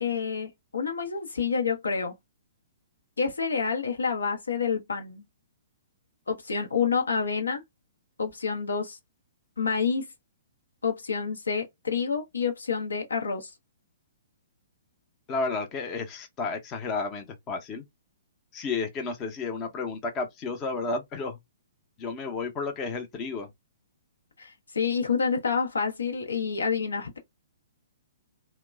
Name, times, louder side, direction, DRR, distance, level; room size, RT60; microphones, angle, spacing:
voice 1, 0.0-2.1 3.2-5.2 6.3-7.6 8.2-9.0 9.6-10.1 10.8-13.5 24.4-27.2, left 5 dB, 75° left, 0.7 m, -28 dB
voice 2, 15.3-17.8 18.5-21.4 22.0-23.5, left 4 dB, 25° left, 0.6 m, -32 dB
2.9 x 2.1 x 2.2 m
figure-of-eight pair, 120°, 0 cm